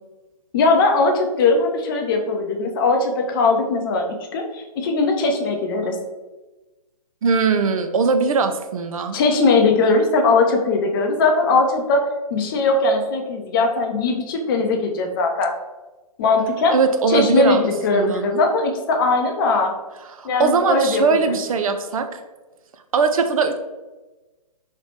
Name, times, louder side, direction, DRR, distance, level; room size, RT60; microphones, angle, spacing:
voice 1, 0.5-6.0 9.1-12.0 12.3-15.5 16.2-16.7 17.1-19.7 20.2-21.4, left 3 dB, 35° left, 3 dB, 0.5 m, -19 dB
voice 2, 7.2-9.2 16.7-17.6 17.9-18.3 20.1-22.2 22.9-23.6, right 4 dB, 60° right, 7 dB, 0.4 m, -20 dB
3.1 x 2.8 x 3.1 m, 1.1 s
figure-of-eight pair, 130°, 20 cm